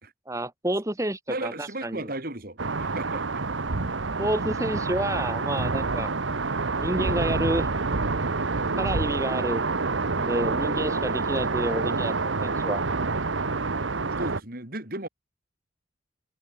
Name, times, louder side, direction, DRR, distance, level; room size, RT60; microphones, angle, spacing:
voice 1, 0.3-2.1 4.2-6.1 6.8-7.7 8.8-9.6 10.1-12.8, right 1 dB, 15° right, 1.8 m, -29 dB
voice 2, 1.3-3.4 14.2-15.1, right 1 dB, 50° right, 4.4 m, -35 dB
sound 1, 2.6-14.4, right 3 dB, 80° right, 1.2 m, -27 dB
head